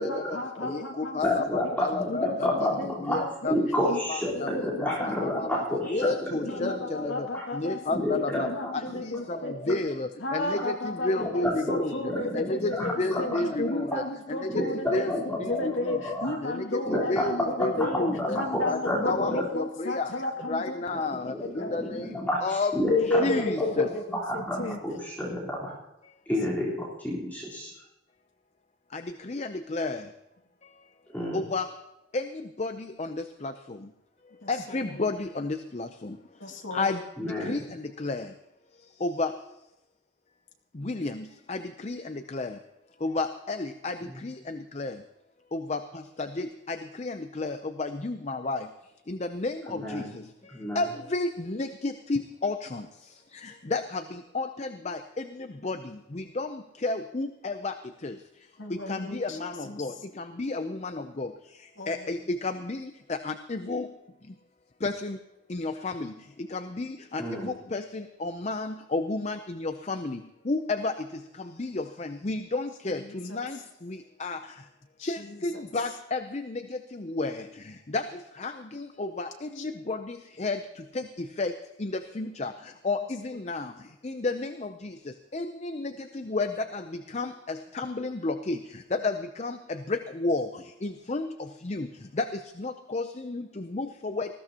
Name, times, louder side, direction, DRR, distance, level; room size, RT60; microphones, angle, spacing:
voice 1, 0.0-1.5 2.1-2.9 3.2-3.6 3.9-4.0 4.3-6.1 6.4-9.8 10.2-18.1 18.3-20.8 21.3-21.7 22.9-24.8 34.4-34.5 34.8-35.0 36.4-37.0 58.6-59.4 59.6-59.9 61.8-62.1 72.9-73.4 75.0-75.4 79.6-79.7, left 2 dB, 80° left, 0 dB, 2.4 m, -33 dB
voice 2, 0.6-2.2 2.6-2.7 3.1-3.5 4.1-4.5 4.8-5.6 5.9-7.1 7.6-8.5 8.7-8.8 9.3-9.4 9.7-11.9 12.3-12.7 13.0-14.0 14.3-14.6 14.9-15.1 15.6-15.7 16.4-18.4 18.6-18.8 19.0-20.1 20.5-21.3 21.6-22.0 22.4-22.7 23.1-23.9 28.9-29.0 29.3-30.0 31.3-31.7 32.1-32.2 32.6-32.7 33.0-33.1 33.4-33.5 34.5-35.9 36.7-37.0 37.5-37.6 38.0-38.2 39.0-39.3 40.9-41.6 41.8-42.0 42.3-42.5 43.0-43.9 44.2-44.9 45.5-45.8 46.4-46.5 47.0-48.6 49.1-49.5 49.9-50.0 50.8-52.8 53.7-53.8 54.3-55.0 55.6-55.8 56.2-56.5 56.8-57.7 58.0-58.1 58.9-59.9 60.4-60.8 61.2-61.3 61.9-62.8 63.2-63.9 64.8-65.2 65.5-66.1 66.5-66.9 67.1-70.2 70.5-70.9 71.6-73.0 73.3-73.6 74.2-74.4 75.1-76.6 77.2-77.3 77.9-78.0 78.4-79.3 79.9-80.6 81.4-81.5 81.8-82.5 82.8-83.0 83.2-83.6 84.0-84.5 85.3-85.9 86.3-86.8 87.1-88.6 89.0-89.5 89.9-90.5 90.8-91.3 91.7-91.9 92.6-93.4 93.7-93.9 94.2-94.3, left 3 dB, 35° left, 8 dB, 0.5 m, -31 dB
voice 3, 1.2-3.2 3.5-7.4 7.9-9.0 9.3-9.7 10.6-10.7 11.2-14.0 14.5-16.4 16.9-19.5 21.2-23.9 24.1-25.7 26.3-27.7 31.1-31.4 37.2-37.7 44.1-44.2 49.7-50.1 50.5-50.8 67.2-67.5, left 1 dB, 10° left, -6 dB, 3.8 m, -31 dB
19.5 x 15.0 x 2.9 m, 0.92 s
head